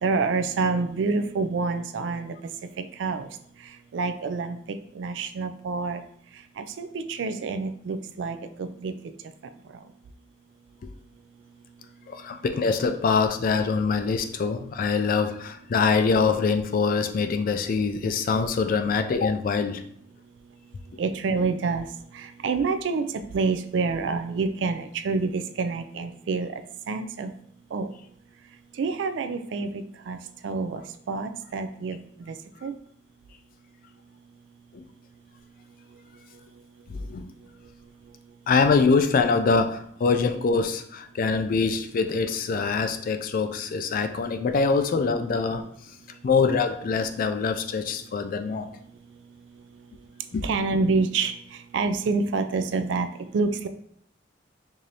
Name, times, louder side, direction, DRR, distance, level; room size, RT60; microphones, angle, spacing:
voice 1, 0.0-2.3 3.0-3.3 3.9-6.0 6.6-8.9 21.0-21.9 22.1-23.1 23.3-26.5 26.9-27.3 27.7-27.9 28.8-30.2 30.4-30.8 31.1-32.3 32.6-32.7 50.4-51.3 51.7-53.1 53.3-53.7, right 4 dB, 70° right, 8 dB, 0.3 m, -27 dB
voice 2, 12.1-19.8 34.7-34.8 36.9-37.3 38.5-45.6 46.2-48.7 50.3-50.4, left 4 dB, 50° left, 7 dB, 0.3 m, -24 dB
4.8 x 2.6 x 2.8 m, 0.66 s
head